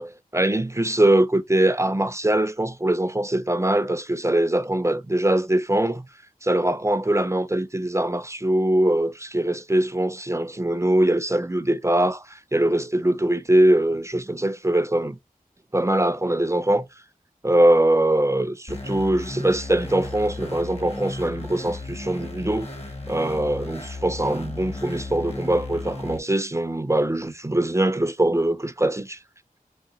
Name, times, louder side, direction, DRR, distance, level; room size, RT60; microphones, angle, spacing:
voice 1, 0.0-6.1 6.4-15.2 15.7-16.9 17.4-22.7 23.1-29.2, right 1 dB, 20° right, 0.4 m, -22 dB
sound 1, 18.7-26.2, left 2 dB, 45° left, 0.8 m, -35 dB
3.9 x 2.2 x 3.8 m
wide cardioid pair, 55°, 15 cm